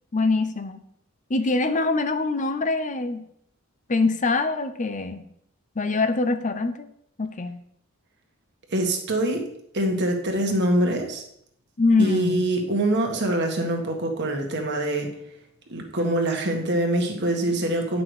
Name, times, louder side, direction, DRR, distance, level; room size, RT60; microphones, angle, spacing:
voice 1, 0.1-0.8 1.3-3.2 3.9-5.2 5.8-6.9 7.2-7.6 11.8-12.4, left 3 dB, 35° left, 9 dB, 0.6 m, -23 dB
voice 2, 8.7-9.5 9.7-11.2 12.0-15.1 15.7-18.0, right 1 dB, 55° right, 2 dB, 1.8 m, -24 dB
9.7 x 6.1 x 4.9 m, 0.72 s
head